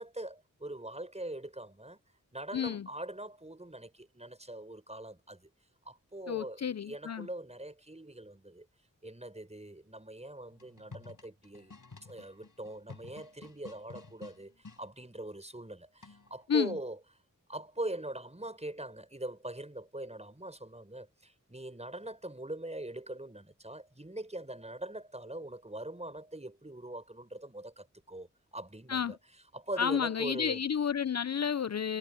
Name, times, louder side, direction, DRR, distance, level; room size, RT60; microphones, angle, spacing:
voice 1, 0.0-2.0 2.3-5.5 5.8-8.7 9.0-11.7 12.0-17.0 17.5-30.6, right 1 dB, 20° right, 5.9 m, -42 dB
voice 2, 2.5-2.9 6.3-7.3 16.5-16.7 28.9-29.1 29.8-32.0, left 7 dB, 55° left, 0.5 m, -31 dB
sound 1, 10.5-14.8 16.0-16.4, left 4 dB, 80° left, 4.3 m, -52 dB
wide cardioid pair, 65°, 32 cm